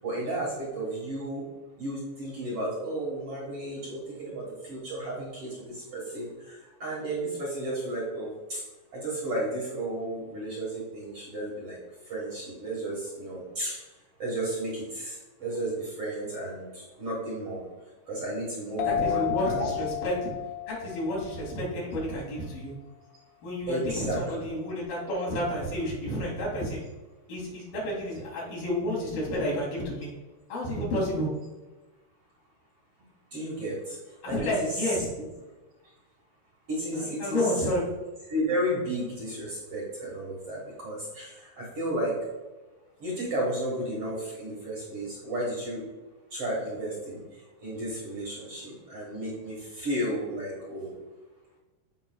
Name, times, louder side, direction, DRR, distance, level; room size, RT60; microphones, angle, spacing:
voice 1, 0.0-1.4 1.8-8.6 8.9-11.8 12.1-13.7 14.2-17.6 18.1-19.7 23.7-24.2 33.3-34.0 34.3-34.9 36.7-37.4 38.3-42.1 43.0-45.8 46.3-47.2 47.6-50.9, right 1 dB, 60° right, -4 dB, 1.5 m, -33 dB
sound 1, 18.8-22.1, left 13 dB, 85° left, 1.9 m, -32 dB
voice 2, 18.8-20.1 20.7-22.7 23.4-26.8 27.3-30.1 30.5-31.3 34.2-35.1 36.9-37.9, left 1 dB, 60° left, -5 dB, 4.0 m, -30 dB
14.0 x 5.5 x 2.3 m, 1.2 s
omnidirectional pair, 5.0 m